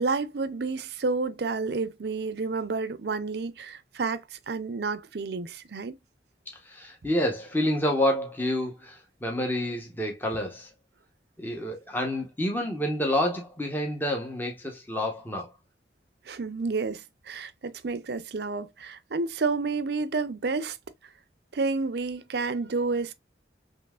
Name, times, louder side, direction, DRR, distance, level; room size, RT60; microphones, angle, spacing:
voice 1, 0.0-6.0 16.3-20.8 21.5-23.1, right 4 dB, 65° right, 0.5 m, -30 dB
voice 2, 6.5-10.7 11.4-15.5, left 1 dB, 10° left, 0.9 m, -28 dB
5.4 x 3.2 x 2.3 m
head